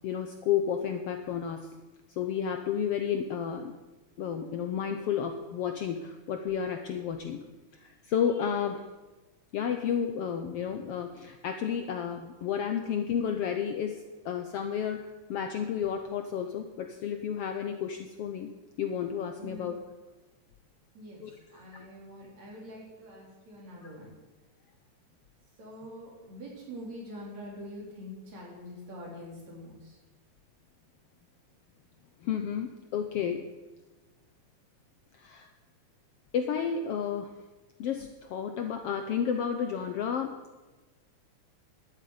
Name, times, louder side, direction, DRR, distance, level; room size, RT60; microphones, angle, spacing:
voice 1, 0.0-1.7 2.2-3.8 4.2-7.4 7.7-8.8 9.5-18.5 18.8-19.8 21.2-21.3 23.8-23.9 32.2-33.4 35.1-35.5 36.3-37.3 37.8-40.4, left 8 dB, 70° left, 6 dB, 1.5 m, -31 dB
voice 2, 19.4-19.8 20.9-24.1 25.6-30.0, equal, 60° right, -2 dB, 5.1 m, -45 dB
11.5 x 8.9 x 9.6 m, 1.2 s
omnidirectional pair, 3.5 m